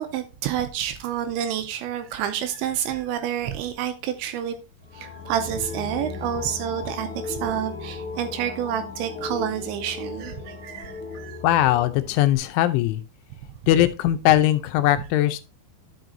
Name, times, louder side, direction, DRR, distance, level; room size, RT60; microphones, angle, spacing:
voice 1, 0.0-4.6 4.9-11.4 15.0-15.1, right 10 dB, 85° right, 2.8 m, -29 dB
sound 1, 4.8-12.4, left 4 dB, 45° left, 1.9 m, -36 dB
voice 2, 11.4-13.0 13.7-15.4, left 13 dB, 85° left, 3.0 m, -20 dB
11.0 x 6.0 x 2.6 m
omnidirectional pair, 5.6 m